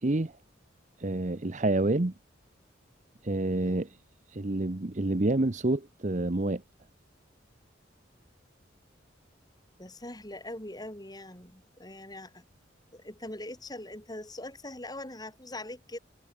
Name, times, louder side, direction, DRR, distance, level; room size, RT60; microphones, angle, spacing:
voice 1, 0.0-0.3 1.0-2.1 3.2-4.0 4.3-6.6, right 2 dB, 40° right, 0.9 m, -28 dB
voice 2, 9.8-12.4 12.9-16.0, left 1 dB, 20° left, 6.4 m, -42 dB
head